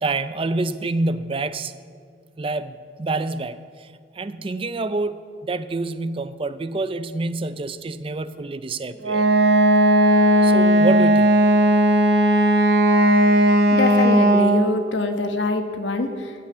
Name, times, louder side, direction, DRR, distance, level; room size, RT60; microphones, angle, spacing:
voice 1, 0.0-1.7 2.4-3.9 4.2-5.2 5.4-9.3 10.4-11.4, right 3 dB, 30° right, 13 dB, 0.4 m, -27 dB
Wind instrument woodwind instrument, 9.0-14.7, right 1 dB, 60° right, 0.8 m, -16 dB
voice 2, 13.7-16.3, left 2 dB, 90° left, 6 dB, 1.2 m, -24 dB
14.5 x 5.7 x 8.5 m, 2.1 s
head